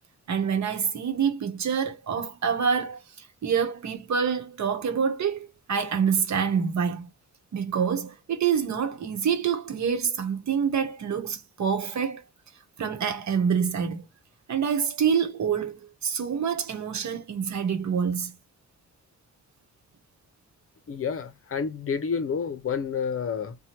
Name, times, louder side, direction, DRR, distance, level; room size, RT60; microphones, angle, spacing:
voice 1, 0.3-7.1 7.5-12.2 12.8-14.0 14.5-18.3, right 7 dB, 65° right, 1.0 m, -26 dB
voice 2, 20.9-23.6, left 6 dB, 50° left, 0.6 m, -29 dB
2.9 x 2.2 x 2.8 m
wide cardioid pair, 115°, 30 cm